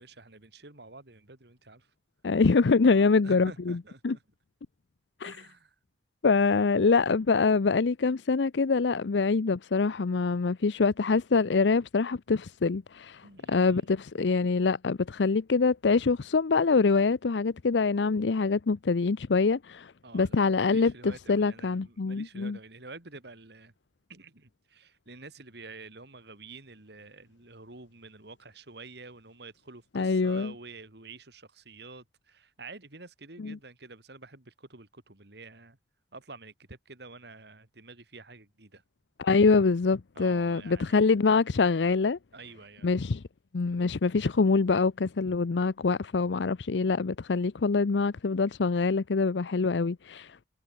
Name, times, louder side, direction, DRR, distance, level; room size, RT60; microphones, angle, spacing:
voice 1, 0.0-1.9 2.8-4.2 5.2-5.7 13.2-13.9 20.0-23.7 24.1-35.8 36.1-38.8 40.1-41.1 42.3-42.9, right 3 dB, 70° right, 3.1 m, -48 dB
voice 2, 2.2-3.8 4.0-4.2 5.2-5.3 6.2-22.6 29.9-30.5 33.4-33.6 39.2-42.2 42.8-43.2 43.5-50.4, left 4 dB, 90° left, 0.6 m, -25 dB
head